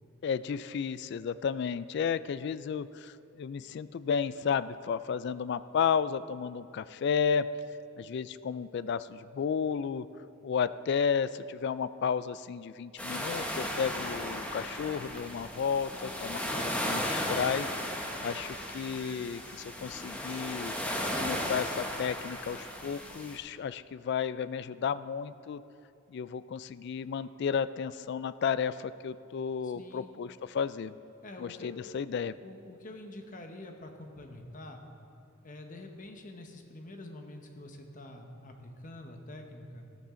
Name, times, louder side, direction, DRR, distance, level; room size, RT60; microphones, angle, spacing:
voice 1, 0.2-7.5 8.0-10.1 10.4-17.7 18.2-20.7 21.1-25.6 26.1-31.0 31.4-32.3, left 6 dB, 55° left, 15 dB, 0.3 m, -33 dB
sound 1, 13.0-23.4, left 1 dB, 5° left, 1.0 m, -35 dB
voice 2, 15.9-16.6 29.6-30.1 31.2-31.8 32.4-34.8 35.4-39.9, left 1 dB, 40° left, 4 dB, 1.1 m, -47 dB
14.5 x 13.0 x 3.8 m, 2.6 s
head